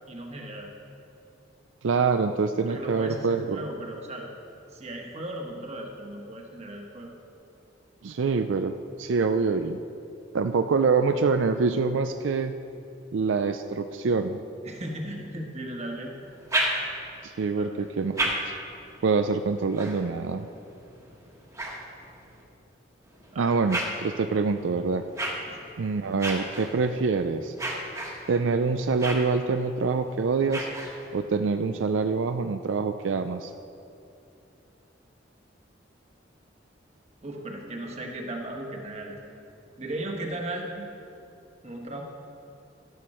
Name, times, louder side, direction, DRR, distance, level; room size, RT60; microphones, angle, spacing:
voice 1, 0.1-0.7 2.7-4.3 4.7-7.1 14.6-16.1 17.6-17.9 23.3-23.5 25.5-25.7 37.2-39.1 39.8-40.9 41.6-42.0, right 1 dB, 35° right, 1 dB, 1.4 m, -36 dB
voice 2, 1.8-3.6 8.0-9.8 10.3-12.6 13.1-14.4 17.2-18.3 19.0-20.5 23.4-25.0 25.8-27.5 28.3-30.7 31.1-33.5, right 4 dB, 80° right, 8 dB, 0.4 m, -25 dB
sound 1, 16.2-17.2 17.8-22.4 23.0-31.3, right 1 dB, 15° right, 1.3 m, -35 dB
12.0 x 11.5 x 4.3 m, 2.6 s
head